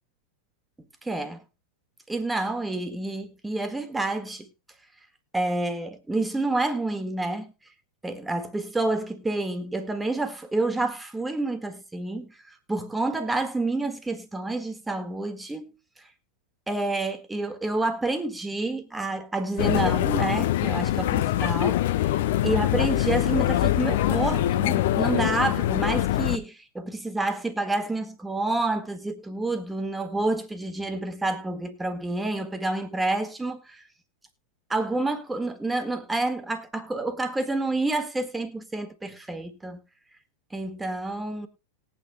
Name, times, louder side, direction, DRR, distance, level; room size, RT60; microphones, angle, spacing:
voice 1, 1.0-1.4 2.1-4.5 5.3-7.5 8.0-15.8 16.7-21.9 22.4-33.8 34.7-39.8 40.5-41.5, right 2 dB, 10° right, 1.6 m, -29 dB
sound 1, 19.6-26.4, left 13 dB, 55° left, 0.7 m, -24 dB
20.0 x 9.0 x 2.2 m
figure-of-eight pair, 90°, 0 cm